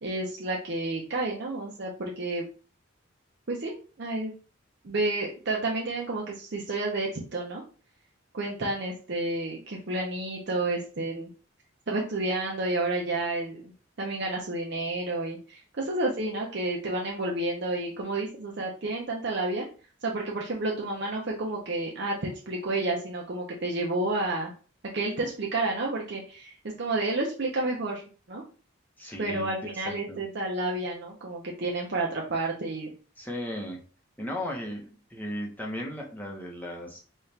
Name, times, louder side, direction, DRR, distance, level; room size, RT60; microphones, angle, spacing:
voice 1, 0.0-2.4 3.5-4.3 4.8-7.6 8.3-11.3 11.9-13.7 14.0-19.7 20.0-24.5 24.9-28.0 28.3-28.4 29.2-32.9, right 2 dB, 55° right, -2 dB, 0.6 m, -30 dB
voice 2, 29.0-30.2 33.2-33.8 34.2-37.0, equal, 10° left, -1 dB, 0.8 m, -36 dB
4.2 x 2.4 x 3.3 m, 0.38 s
head